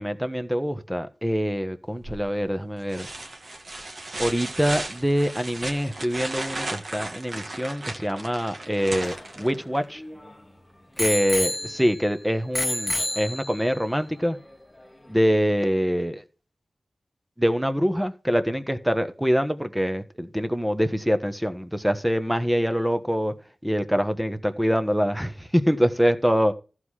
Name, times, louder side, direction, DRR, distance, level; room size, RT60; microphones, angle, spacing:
voice 1, 0.0-3.1 4.2-10.0 11.0-14.4 15.1-16.2 17.4-23.3 23.6-26.5, equal, 5° right, 1.3 m, -24 dB
sound 1, 2.0-2.4 2.9-9.8 11.6-11.7, right 2 dB, 55° right, 1.7 m, -35 dB
Bicycle bell, 8.7-10.3 11.0-12.1 12.5-13.8 14.5-14.6, left 1 dB, 15° left, 1.4 m, -29 dB
14.5 x 4.9 x 5.8 m
wide cardioid pair, 90°, 0 cm